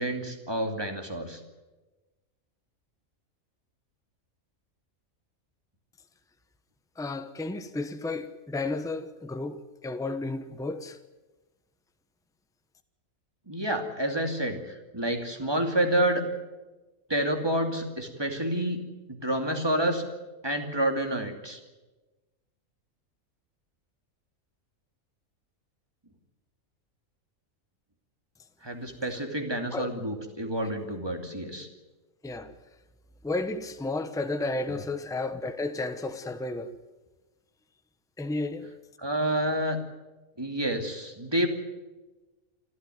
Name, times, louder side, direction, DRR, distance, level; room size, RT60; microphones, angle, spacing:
voice 1, 0.0-1.4 13.5-14.6 14.9-16.2 17.1-18.8 19.1-20.0 20.4-21.6 28.6-31.7 39.0-39.8 40.4-41.5, right 1 dB, 20° right, 2.7 m, -28 dB
voice 2, 7.0-11.0 29.7-29.9 32.2-32.5 33.2-36.7 38.2-38.7, left 2 dB, 5° left, 0.9 m, -32 dB
28.5 x 13.0 x 9.3 m
omnidirectional pair, 1.4 m